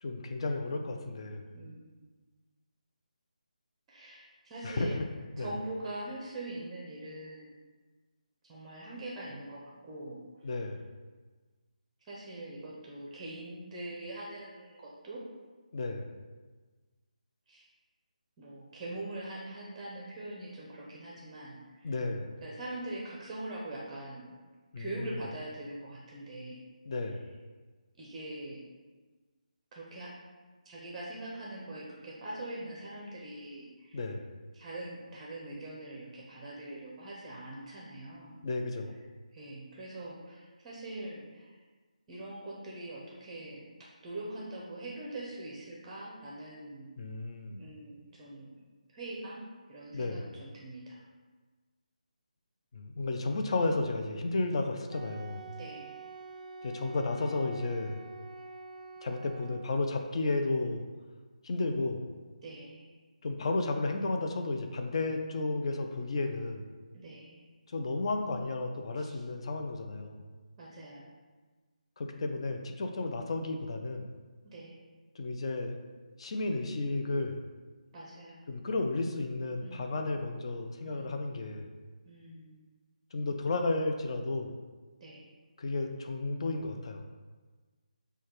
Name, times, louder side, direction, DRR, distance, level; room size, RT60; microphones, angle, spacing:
voice 1, 0.0-1.4 4.6-5.1 5.4-5.5 10.4-10.9 15.7-16.1 21.8-22.3 24.7-25.2 26.9-27.3 33.9-34.3 38.4-38.9 47.0-47.6 49.9-50.3 52.7-55.5 56.6-58.0 59.0-60.9 61.4-62.0 63.2-66.6 67.7-70.2 72.0-74.1 75.2-75.8 76.2-77.5 78.5-81.7 83.1-84.5 85.6-87.0, left 2 dB, 45° left, 4 dB, 0.4 m, -33 dB
voice 2, 1.5-2.1 3.9-5.0 5.4-7.7 8.4-10.6 12.0-15.2 17.5-17.7 18.4-21.9 22.4-24.4 24.8-26.6 27.0-27.2 28.0-28.6 29.7-30.1 30.6-34.0 34.5-38.4 39.3-41.6 42.1-46.9 47.6-48.5 48.9-51.1 52.9-53.1 55.5-56.0 62.4-63.0 66.9-67.5 69.0-69.2 70.6-71.1 74.4-74.8 77.9-78.4 79.6-80.0 80.8-81.3 82.0-82.6 85.0-85.3, right 1 dB, 15° right, -4 dB, 0.6 m, -43 dB
Wind instrument woodwind instrument, 54.9-59.8, right 3 dB, 70° right, 0.4 m, -46 dB
6.3 x 2.2 x 3.0 m, 1.3 s
figure-of-eight pair, 155°, 4 cm